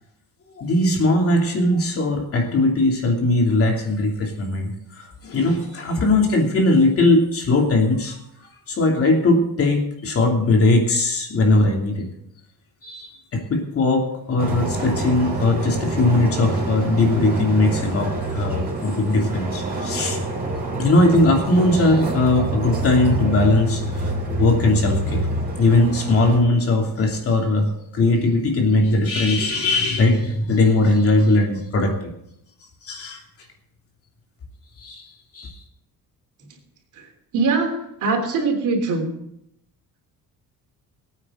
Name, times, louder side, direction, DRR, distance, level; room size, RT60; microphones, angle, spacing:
voice 1, 0.6-4.7 5.2-8.2 8.7-12.1 12.8-20.2 20.8-24.1 24.4-25.3 25.6-31.9 32.8-33.2 34.8-35.0 35.3-35.5, left 2 dB, 40° left, 1 dB, 2.9 m, -19 dB
sound 1, 14.4-26.4, right 2 dB, 25° right, 4.3 m, -27 dB
voice 2, 37.3-39.1, right 3 dB, 60° right, 2 dB, 3.5 m, -22 dB
21.0 x 9.1 x 3.8 m, 0.77 s
cardioid pair, 165°, 35 cm